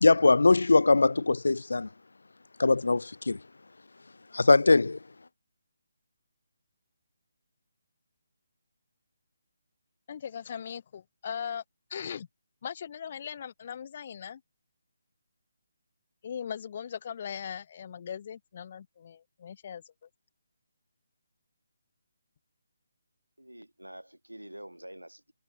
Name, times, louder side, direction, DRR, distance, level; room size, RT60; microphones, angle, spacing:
voice 1, 0.0-1.9 2.6-3.4 4.3-5.0, left 3 dB, 65° left, 0.5 m, -21 dB
voice 2, 10.1-11.6 11.9-12.3 12.6-14.4 16.2-19.8, left 8 dB, 35° left, 1.8 m, -39 dB
voice 3, 23.4-25.3, right 1 dB, 85° right, 7.7 m, -47 dB
figure-of-eight pair, 145°, 0 cm